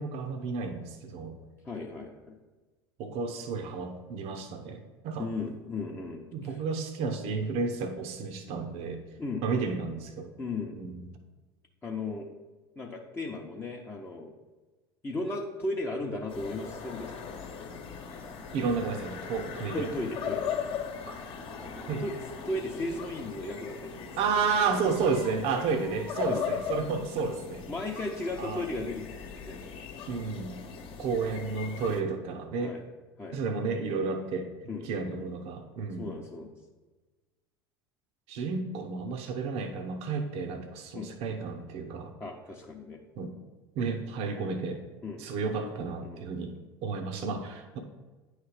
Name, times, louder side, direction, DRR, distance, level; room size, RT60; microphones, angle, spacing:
voice 1, 0.0-1.4 3.0-5.3 6.3-9.0 9.4-10.3 10.8-11.2 18.5-19.9 21.1-21.2 21.9-22.0 24.2-27.6 28.4-28.7 30.1-30.6 31.0-32.7 33.3-34.5 34.8-36.1 38.3-42.1 43.2-43.3 43.7-44.8 45.2-46.5 46.8-47.8, right 4 dB, 55° right, 6 dB, 0.9 m, -32 dB
voice 2, 1.6-2.4 5.2-6.6 9.2-9.5 10.4-10.8 11.8-12.3 12.8-14.3 15.0-17.3 19.7-20.5 22.0-22.1 22.4-24.2 26.3-26.5 27.7-29.1 29.5-29.7 32.6-32.8 33.2-33.4 34.7-34.9 36.0-36.5 40.9-41.1 42.2-43.0 45.0-45.2 46.0-46.2, left 2 dB, 15° left, -2 dB, 0.9 m, -36 dB
sound 1, 16.3-32.0, left 7 dB, 45° left, 1.1 m, -39 dB
9.5 x 3.3 x 5.0 m, 1.2 s
hypercardioid pair, 75°, 13 cm